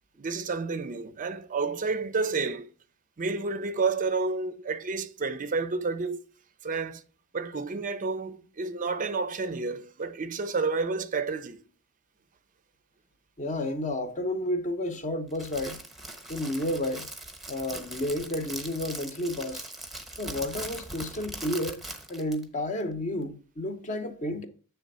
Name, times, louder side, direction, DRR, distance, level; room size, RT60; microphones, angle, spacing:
voice 1, 0.2-2.7 3.2-6.2 6.6-7.0 7.3-11.6, right 4 dB, 35° right, 0.5 m, -30 dB
voice 2, 13.4-15.8 16.3-17.1 17.5-19.6 20.2-21.8 22.1-24.5, left 1 dB, 35° left, 0.8 m, -31 dB
Crackle, 15.3-22.4, right 1 dB, ahead, 0.9 m, -41 dB
8.1 x 3.4 x 5.3 m
head